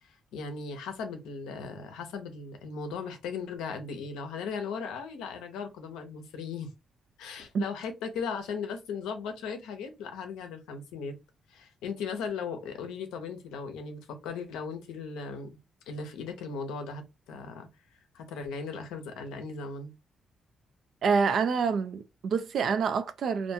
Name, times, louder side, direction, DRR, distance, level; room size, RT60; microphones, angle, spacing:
voice 1, 0.3-6.7 7.2-11.1 11.5-15.5 15.9-17.7 18.1-19.9, left 5 dB, 90° left, 0.5 m, -37 dB
voice 2, 21.0-23.5, right 5 dB, 65° right, 0.4 m, -27 dB
2.5 x 2.2 x 2.7 m
supercardioid pair, 65°, 0 cm